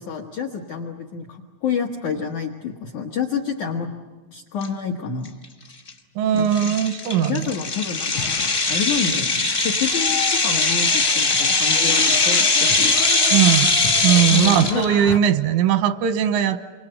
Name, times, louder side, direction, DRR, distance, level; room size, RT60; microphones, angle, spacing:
voice 1, 0.0-3.9 4.3-5.3 6.3-6.7 7.2-12.9 14.3-14.8, left 6 dB, 75° left, 1 dB, 1.8 m, -28 dB
sound 1, 4.6-4.7 5.3-5.4 5.9-6.0 6.5-14.8, left 3 dB, 40° left, 1.0 m, -20 dB
voice 2, 6.2-7.5 13.3-13.8 14.0-16.6, right 10 dB, 90° right, 10 dB, 3.6 m, -19 dB
sound 2, 8.1-15.2, left 11 dB, 90° left, 3.5 m, -33 dB
29.0 x 25.5 x 7.9 m, 1.3 s
omnidirectional pair, 5.5 m